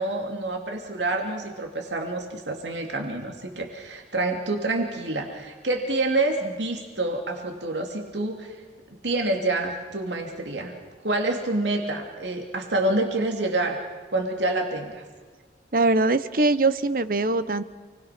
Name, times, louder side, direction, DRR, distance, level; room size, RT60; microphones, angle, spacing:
voice 1, 0.0-8.5 9.0-10.7 11.0-13.8 14.1-15.0, right 2 dB, 90° right, 3 dB, 2.8 m, -27 dB
voice 2, 15.7-17.6, right 2 dB, 50° right, 14 dB, 0.9 m, -22 dB
29.0 x 21.0 x 6.1 m, 1.4 s
head